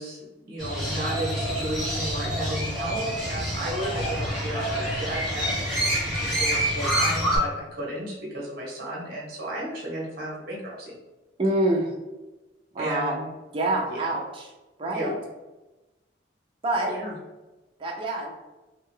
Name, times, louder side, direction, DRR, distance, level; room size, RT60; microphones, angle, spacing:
voice 1, 0.0-10.9 12.8-13.3 13.7-14.1 14.9-15.1 16.9-17.2, right 1 dB, 55° right, -3 dB, 0.9 m, -34 dB
Crow, 0.6-7.4, equal, 5° right, 1.2 m, -27 dB
voice 2, 11.4-11.9 12.7-13.2 13.5-14.5 14.8-15.1 16.6-16.9 17.8-18.3, right 1 dB, 30° right, -1 dB, 0.4 m, -26 dB
2.7 x 2.3 x 3.1 m, 1.1 s
head